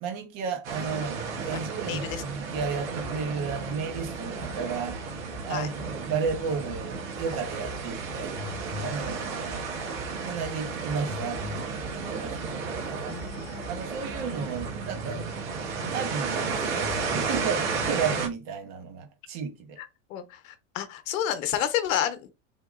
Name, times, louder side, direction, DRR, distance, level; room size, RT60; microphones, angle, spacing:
voice 1, 0.0-5.0 5.4-8.3 8.8-9.7 10.2-12.5 12.8-13.2 13.7-15.3 15.9-19.8, right 5 dB, 40° right, 1.1 m, -33 dB
sound 1, 0.6-18.3, right 4 dB, 70° right, 1.5 m, -33 dB
voice 2, 1.5-2.2 5.5-5.7 13.1-13.8 19.8-22.3, left 11 dB, 75° left, 0.8 m, -31 dB
3.6 x 2.8 x 2.4 m
supercardioid pair, 155°, 40 cm